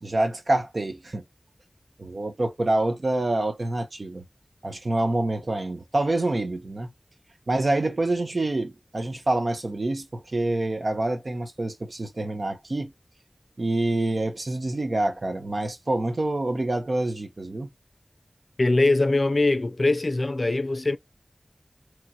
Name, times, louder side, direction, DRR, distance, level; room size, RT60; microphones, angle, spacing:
voice 1, 0.0-1.2 2.0-4.2 4.6-6.9 7.5-12.9 13.6-17.7, right 2 dB, 70° right, 0.8 m, -26 dB
voice 2, 18.6-21.0, left 2 dB, 60° left, 0.4 m, -22 dB
3.0 x 2.9 x 2.2 m
wide cardioid pair, 45°, 0 cm